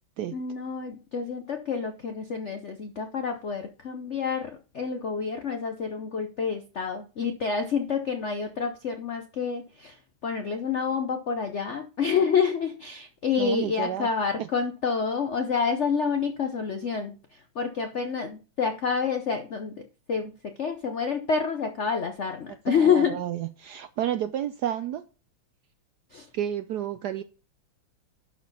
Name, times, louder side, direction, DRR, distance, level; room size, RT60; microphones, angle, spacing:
voice 1, 0.3-19.8 20.1-20.3 20.6-23.2 26.1-26.3, left 6 dB, 70° left, 0.6 m, -28 dB
voice 2, 13.4-14.1 14.4-14.5 22.7-25.0 26.3-27.2, right 11 dB, 75° right, 0.9 m, -31 dB
11.5 x 4.5 x 4.0 m
omnidirectional pair, 2.2 m